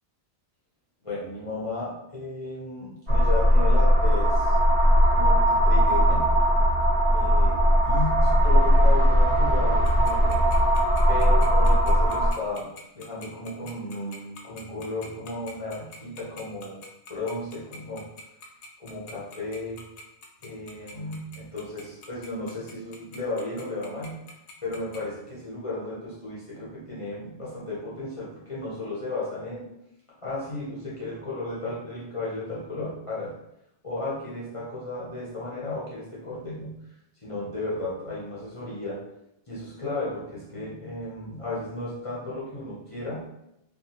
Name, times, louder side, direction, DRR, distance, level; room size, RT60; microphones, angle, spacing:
voice 1, 1.0-4.6 5.1-6.4 7.1-10.4 11.1-16.8 17.1-18.1 18.8-19.8 20.4-24.2 24.6-29.7 30.2-33.4 33.8-36.9 37.2-39.0 39.5-43.3, left 2 dB, 40° left, -6 dB, 0.5 m, -34 dB
sound 1, 3.1-12.3, equal, 55° right, 1.1 m, -19 dB
Tick-tock, 9.8-25.0, left 3 dB, 75° left, 0.8 m, -45 dB
2.7 x 2.3 x 2.7 m, 0.84 s
omnidirectional pair, 1.2 m